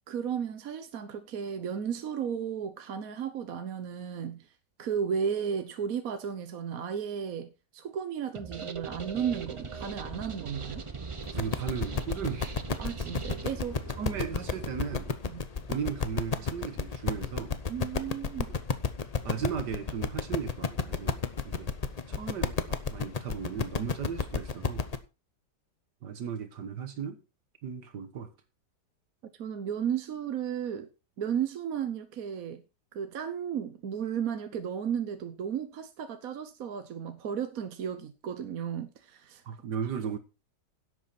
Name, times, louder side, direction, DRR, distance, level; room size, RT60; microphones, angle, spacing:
voice 1, 0.1-4.5 4.8-10.8 12.8-13.9 15.3-15.5 17.7-18.5 29.4-30.9 31.2-32.6 32.9-39.4, right 8 dB, 60° right, 1.3 m, -34 dB
sound 1, 8.3-13.5, right 5 dB, 40° right, 0.4 m, -40 dB
sound 2, 9.4-15.1, right 2 dB, 10° right, 5.3 m, -47 dB
sound 3, 11.2-25.0, left 5 dB, 40° left, 0.5 m, -32 dB
voice 2, 11.3-12.6 14.0-15.1 15.7-17.6 19.2-21.2 21.5-21.7 22.1-24.8 26.0-27.2 27.6-28.3 39.5-40.2, right 7 dB, 75° right, 1.7 m, -36 dB
11.5 x 8.2 x 4.2 m
omnidirectional pair, 1.9 m